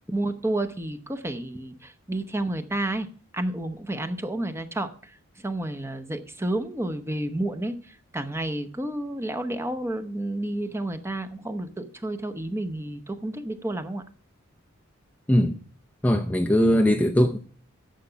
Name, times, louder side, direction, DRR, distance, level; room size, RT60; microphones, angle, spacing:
voice 1, 0.0-3.1 3.3-5.1 5.4-14.0, right 1 dB, 15° right, 0.8 m, -30 dB
voice 2, 16.0-17.4, equal, 5° left, 0.5 m, -20 dB
10.0 x 6.9 x 5.7 m
head